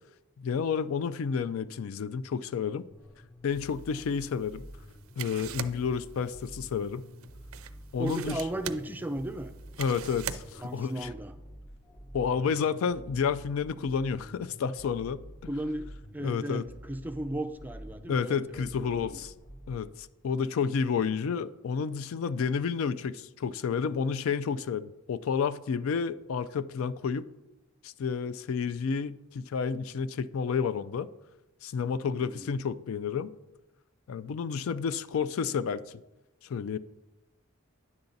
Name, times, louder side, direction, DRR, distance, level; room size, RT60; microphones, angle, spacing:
voice 1, 0.4-2.9 3.4-4.7 5.2-7.1 7.9-8.4 9.8-11.1 12.1-15.2 16.2-16.7 18.1-19.3 19.7-27.3 27.8-31.1 31.6-33.3 34.1-36.0 36.5-36.8, left 6 dB, 70° left, 15 dB, 0.3 m, -30 dB
sound 1, 2.9-19.8, equal, 25° left, 0.8 m, -48 dB
sound 2, 3.5-11.0, right 10 dB, 70° right, 0.4 m, -44 dB
voice 2, 8.0-9.5 10.6-11.3 15.5-15.9 16.1-19.2 32.0-32.5, right 1 dB, 10° right, 8 dB, 0.4 m, -35 dB
9.7 x 7.0 x 3.9 m, 0.99 s
head